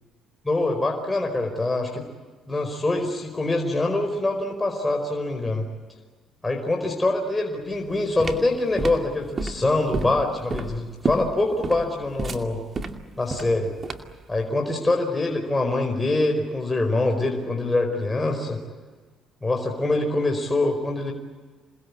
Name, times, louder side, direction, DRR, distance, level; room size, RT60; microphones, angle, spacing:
voice 1, 0.4-2.0 2.5-5.7 6.4-12.6 13.2-13.7 14.3-18.6 19.4-21.1, left 2 dB, 15° left, 2 dB, 4.8 m, -24 dB
sound 1, 7.7-14.2, right 3 dB, 40° right, 2.4 m, -31 dB
28.0 x 20.5 x 8.6 m, 1.4 s
supercardioid pair, 75°, 0 cm